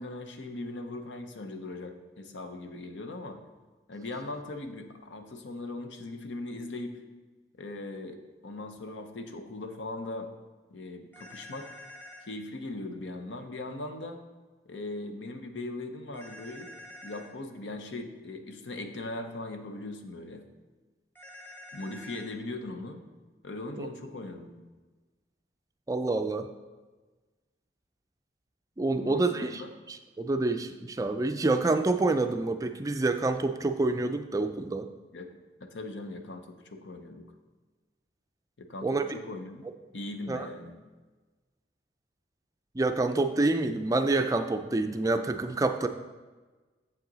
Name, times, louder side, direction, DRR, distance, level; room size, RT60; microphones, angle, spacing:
voice 1, 0.0-3.4 3.9-7.0 7.6-10.3 10.7-11.7 12.2-14.2 14.7-16.7 17.0-20.4 21.7-23.0 23.4-24.6 28.9-29.7 35.1-35.3 35.6-37.3 38.6-39.6 39.9-40.7, left 2 dB, 85° left, 6 dB, 0.8 m, -39 dB
sound 1, 11.1-12.3 16.1-17.3 21.1-22.3, left 1 dB, 10° left, 1.1 m, -47 dB
voice 2, 25.9-26.5 28.8-29.6 29.9-34.9 38.8-39.0 40.3-40.5 42.8-45.9, right 2 dB, 20° right, 8 dB, 0.3 m, -27 dB
7.6 x 7.3 x 4.0 m, 1.3 s
head